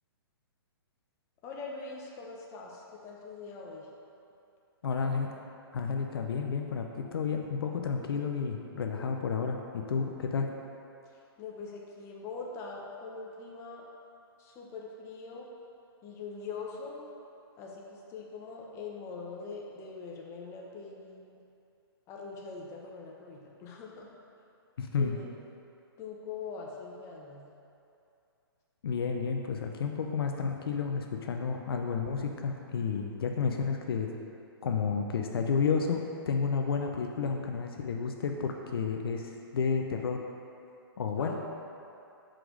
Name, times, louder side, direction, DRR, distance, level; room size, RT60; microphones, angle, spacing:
voice 1, 1.4-3.9 11.0-11.1 11.4-13.9 14.4-15.5 16.0-17.0 17.6-21.4 22.1-24.1 25.0-25.3 26.0-27.4 41.2-41.3, left 4 dB, 20° left, -2 dB, 1.0 m, -42 dB
voice 2, 4.8-5.3 5.7-10.5 24.8-25.2 28.8-34.1 34.6-40.2 41.0-41.3, left 5 dB, 65° left, 3 dB, 0.7 m, -31 dB
6.0 x 5.0 x 6.2 m, 2.7 s
hypercardioid pair, 150°, 13 cm